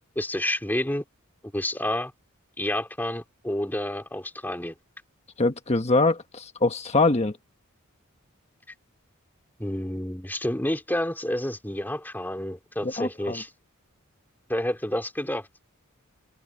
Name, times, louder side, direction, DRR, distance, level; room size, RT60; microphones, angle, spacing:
voice 1, 0.2-1.0 1.4-2.1 2.6-4.7 9.6-13.5 14.5-15.5, left 1 dB, 10° left, 2.7 m, -29 dB
voice 2, 5.4-7.3 12.8-13.4, left 2 dB, 30° left, 1.3 m, -23 dB
open air
head